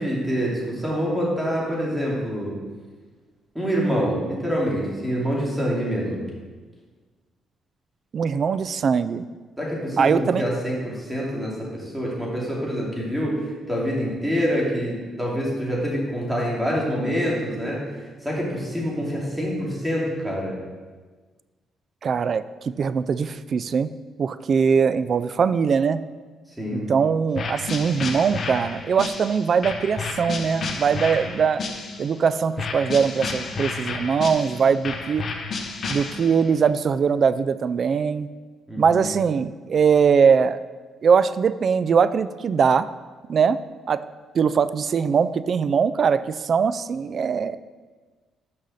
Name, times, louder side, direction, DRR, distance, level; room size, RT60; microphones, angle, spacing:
voice 1, 0.0-2.5 3.5-6.3 9.6-20.6 26.6-26.9 38.7-39.0, equal, 5° right, -5 dB, 2.8 m, -26 dB
voice 2, 8.1-9.3 10.0-10.4 22.0-23.9 24.2-26.0 26.7-31.6 32.0-35.2 35.9-38.3 38.8-40.6 41.0-42.9 43.3-43.6 43.9-44.0 44.3-47.6, right 6 dB, 50° right, 14 dB, 0.3 m, -21 dB
sound 1, 27.3-32.2 32.6-36.5, left 4 dB, 50° left, 0.9 m, -31 dB
6.5 x 5.5 x 6.4 m, 1.4 s
cardioid pair, 90°, 0 cm